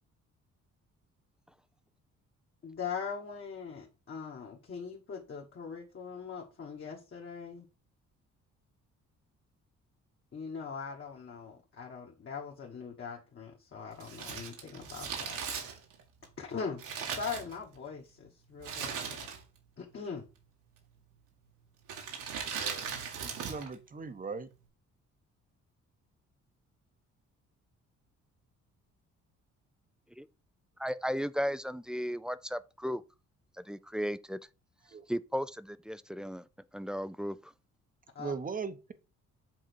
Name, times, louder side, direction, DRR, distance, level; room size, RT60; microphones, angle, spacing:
voice 1, 2.6-7.7 10.3-15.4 16.4-19.3 19.8-20.3 38.1-38.3, left 6 dB, 40° left, 1.6 m, -41 dB
Crumpling crinkling, 14.0-18.0 18.6-19.6 19.9-20.0 20.8-21.2 21.8-23.7 24.0-24.1, right 6 dB, 85° right, 2.1 m, -39 dB
voice 2, 23.2-24.5 34.9-35.0 38.2-38.9, right 5 dB, 30° right, 0.9 m, -39 dB
voice 3, 30.8-33.0 33.7-34.4 35.1-36.4 36.7-37.5, equal, 5° right, 0.4 m, -35 dB
7.5 x 3.9 x 4.6 m
cardioid pair, 90°, 30 cm